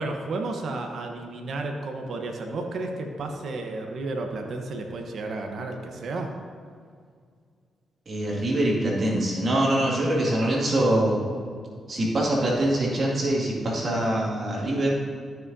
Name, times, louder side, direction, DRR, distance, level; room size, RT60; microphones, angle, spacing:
voice 1, 0.0-6.3, right 2 dB, 70° right, 3 dB, 1.0 m, -32 dB
voice 2, 8.1-11.2 11.9-14.9, right 1 dB, 50° right, -4 dB, 2.2 m, -24 dB
13.0 x 6.3 x 2.7 m, 2.1 s
supercardioid pair, 60°, 0 cm